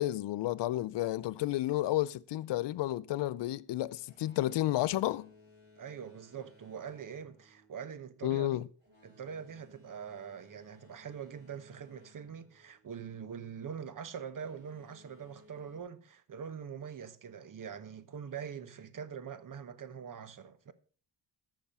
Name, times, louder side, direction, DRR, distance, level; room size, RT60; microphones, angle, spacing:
voice 1, 0.0-5.3 8.2-8.6, left 15 dB, 70° left, 0.6 m, -31 dB
Boat Water vehicle, 4.0-13.4 14.2-15.8, left 2 dB, 25° right, 5.6 m, -62 dB
voice 2, 5.8-8.7 9.0-20.7, right 7 dB, 45° right, 1.1 m, -43 dB
14.0 x 5.9 x 5.5 m
cardioid pair, 105°, 44 cm